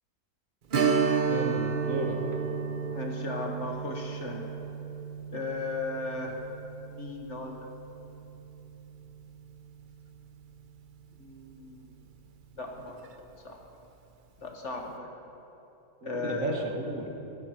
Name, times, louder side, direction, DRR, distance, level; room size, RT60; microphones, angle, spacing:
Strum, 0.7-9.9 10.2-10.3 12.9-13.0 13.5-13.6, right 5 dB, 45° right, 0.7 m, -32 dB
voice 1, 1.2-2.2 16.0-17.1, right 1 dB, 60° right, 1 dB, 2.0 m, -33 dB
voice 2, 2.9-4.5 5.3-6.4 6.9-7.7 11.2-11.9 12.5-13.6 14.4-15.2 16.0-16.7, left 3 dB, 50° left, 1 dB, 1.7 m, -37 dB
23.5 x 11.0 x 4.6 m, 3.0 s
omnidirectional pair, 1.7 m